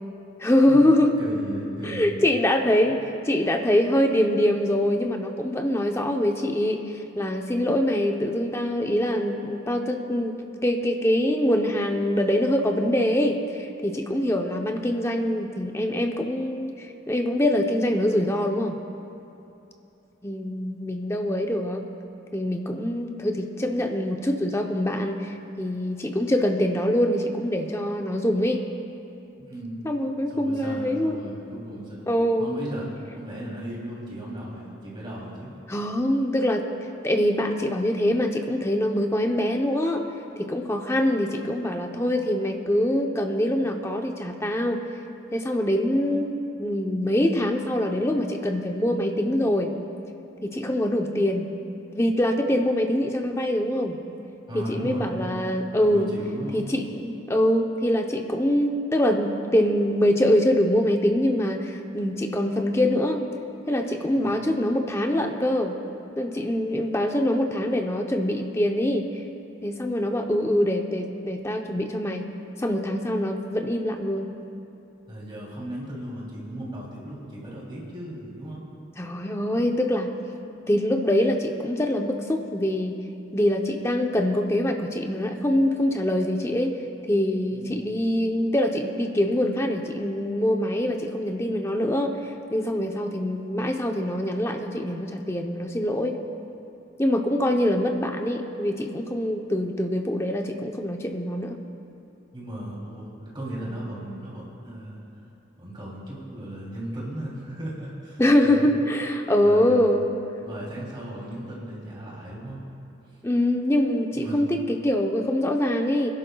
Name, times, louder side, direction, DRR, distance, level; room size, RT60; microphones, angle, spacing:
voice 1, 0.4-1.1 1.8-18.8 20.2-21.8 22.3-28.6 29.8-31.2 32.1-32.5 35.7-36.7 37.0-40.0 40.4-44.9 45.3-49.7 50.4-51.5 51.9-54.0 54.5-56.1 56.5-63.2 63.7-65.8 66.2-69.1 69.6-72.3 72.6-74.3 79.0-80.1 80.7-83.0 83.3-96.2 97.0-101.6 108.2-110.1 113.2-116.1, left 1 dB, 15° left, 3 dB, 0.7 m, -24 dB
voice 2, 1.2-2.2 2.8-2.9 29.4-29.8 30.3-32.0 32.4-32.9 33.1-35.5 54.5-55.4 55.8-56.6 64.1-64.4 75.1-78.6 87.5-87.9 102.3-105.0 105.6-108.7 109.4-109.9 110.4-112.6 114.1-114.4, right 1 dB, 25° right, -5 dB, 3.0 m, -36 dB
25.5 x 11.5 x 2.3 m, 2.9 s
head